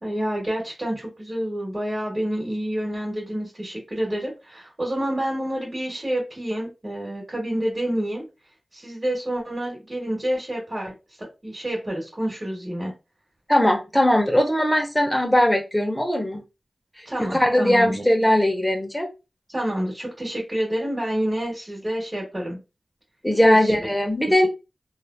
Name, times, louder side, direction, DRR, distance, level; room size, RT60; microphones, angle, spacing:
voice 1, 0.0-8.2 8.7-10.9 11.2-12.9 17.0-18.0 19.5-22.6 23.4-23.9, right 1 dB, 30° right, -3 dB, 1.2 m, -28 dB
voice 2, 13.5-16.4 17.2-19.1 23.2-24.5, left 1 dB, 10° left, 2 dB, 0.7 m, -20 dB
3.2 x 2.4 x 2.2 m, 0.27 s
wide cardioid pair, 60°, 0 cm